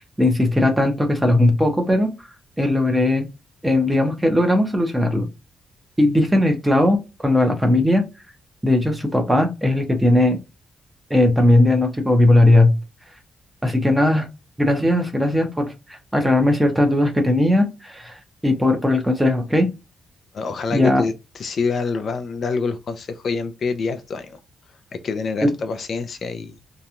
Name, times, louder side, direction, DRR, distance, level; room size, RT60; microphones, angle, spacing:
voice 1, 0.2-2.1 2.6-3.3 3.6-5.3 6.0-8.0 8.6-10.4 11.1-12.7 13.6-14.3 14.6-19.7 20.7-21.0, left 1 dB, 5° right, 0.6 m, -18 dB
voice 2, 20.3-24.4 24.7-26.6, left 4 dB, 45° left, 0.3 m, -26 dB
2.8 x 2.2 x 2.4 m
wide cardioid pair, 155°, 0 cm